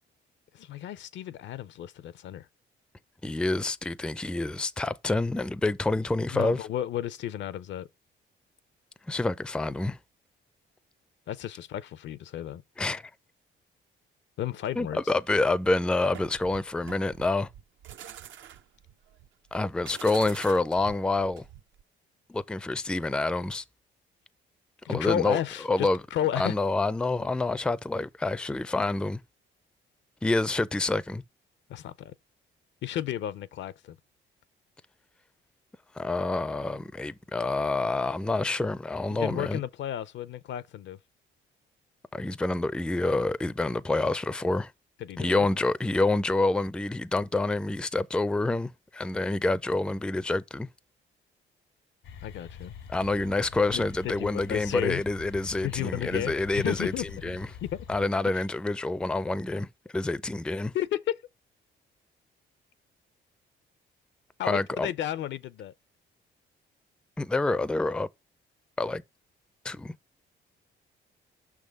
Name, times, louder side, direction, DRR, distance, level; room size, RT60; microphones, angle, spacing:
voice 1, 0.5-2.5 6.3-7.9 11.3-12.6 14.4-15.0 24.8-26.5 31.7-32.1 32.8-34.0 39.1-41.0 45.0-45.5 52.2-52.7 53.7-55.0 55.6-57.9 60.7-61.2 64.4-65.7, left 11 dB, 70° left, 0.5 m, -33 dB
voice 2, 3.2-6.6 9.1-10.0 12.8-13.0 14.8-17.5 19.5-21.5 22.3-23.6 24.9-25.4 25.7-26.0 26.4-29.2 30.2-31.2 36.0-39.6 42.1-44.7 45.2-50.7 52.9-57.5 57.9-59.7 59.9-60.7 64.4-64.9 67.2-68.1 68.8-69.0 69.6-69.9, left 2 dB, 5° left, 0.4 m, -27 dB
sound 1, 16.1-21.8, right 10 dB, 70° right, 0.6 m, -46 dB
sound 2, 52.0-58.1, left 7 dB, 85° left, 1.2 m, -44 dB
6.0 x 3.6 x 5.1 m
cardioid pair, 90°, 20 cm